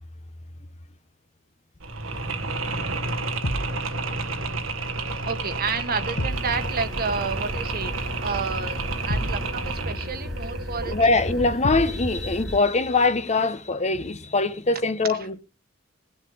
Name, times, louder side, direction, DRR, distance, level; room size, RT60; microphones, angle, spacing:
Mechanisms, 1.8-11.6, right 3 dB, 80° right, 1.7 m, -31 dB
sound 1, 3.4-3.8 6.2-6.5 9.1-9.5 11.6-12.0, equal, 60° left, 1.5 m, -29 dB
voice 1, 5.2-11.0 15.1-15.2, right 5 dB, 50° right, 1.5 m, -30 dB
sound 2, 6.3-12.6, equal, ahead, 2.0 m, -35 dB
voice 2, 10.9-15.4, left 3 dB, 35° left, 0.9 m, -23 dB
21.0 x 7.2 x 5.4 m
head